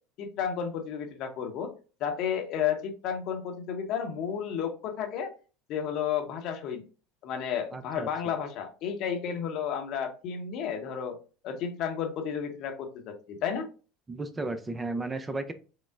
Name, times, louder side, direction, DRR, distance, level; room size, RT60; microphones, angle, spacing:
voice 1, 0.2-1.7 2.0-5.3 5.7-6.8 7.2-11.2 11.4-13.7, left 8 dB, 55° left, 4 dB, 0.8 m, -32 dB
voice 2, 7.7-8.1 14.1-15.5, right 2 dB, 20° right, 10 dB, 0.4 m, -34 dB
5.8 x 2.0 x 2.4 m, 0.36 s
hypercardioid pair, 75°, 0 cm